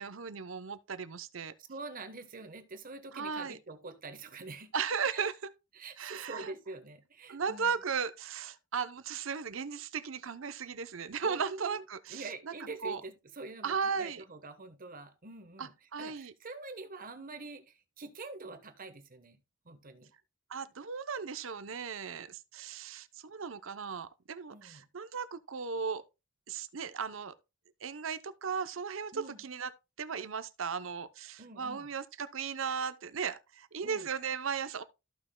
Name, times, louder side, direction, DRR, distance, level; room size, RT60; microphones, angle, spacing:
voice 1, 0.0-1.5 3.1-3.6 4.7-5.3 6.0-6.5 7.3-12.5 12.8-13.0 13.6-14.2 15.6-16.3 20.5-26.0 26.5-27.3 27.8-29.7 30.0-34.8, right 6 dB, 70° right, 0.7 m, -36 dB
voice 2, 1.6-4.7 5.1-5.3 5.7-7.7 11.2-11.8 12.1-15.7 16.0-19.4 19.6-20.1 24.5-24.9 29.1-29.4 31.4-31.9 33.8-34.1, right 3 dB, 45° right, 1.2 m, -46 dB
14.0 x 5.9 x 2.2 m
head